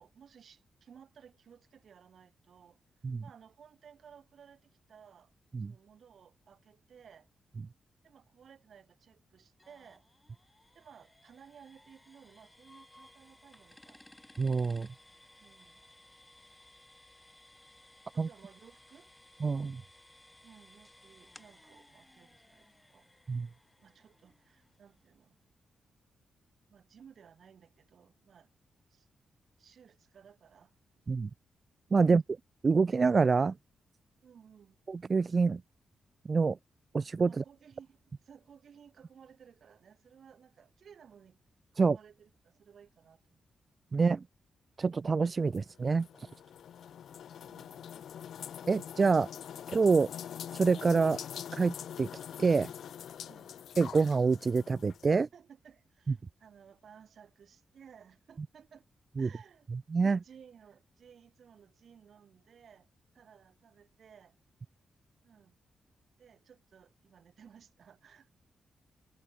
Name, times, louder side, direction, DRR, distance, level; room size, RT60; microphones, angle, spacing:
voice 1, 0.0-2.8 3.2-5.3 5.6-7.3 8.0-10.1 10.7-14.0 15.4-15.8 18.1-19.1 20.4-23.1 23.8-25.4 26.7-28.5 28.9-29.1 29.6-30.7 34.2-34.8 37.3-41.4 41.7-43.4 47.4-48.1 53.2-53.6 55.3-58.9 59.2-59.7 60.2-62.9 63.1-64.4 65.2-65.6 66.2-68.3, right 7 dB, 65° right, 4.1 m, -58 dB
sound 1, 9.6-25.3, left 1 dB, 10° left, 3.9 m, -60 dB
voice 2, 14.4-14.9 18.2-18.3 19.4-19.8 23.3-23.5 31.1-31.3 31.9-32.2 32.6-33.5 34.9-35.6 36.3-36.6 36.9-37.4 41.8-42.0 43.9-44.2 44.8-46.3 48.7-49.3 49.7-50.1 50.5-51.2 51.5-52.1 52.4-52.7 53.8-55.3 59.2-59.3 59.7-60.2, right 4 dB, 40° right, 0.3 m, -26 dB
sound 2, 45.5-55.2, left 9 dB, 75° left, 0.5 m, -44 dB
cardioid pair, 100°, 0 cm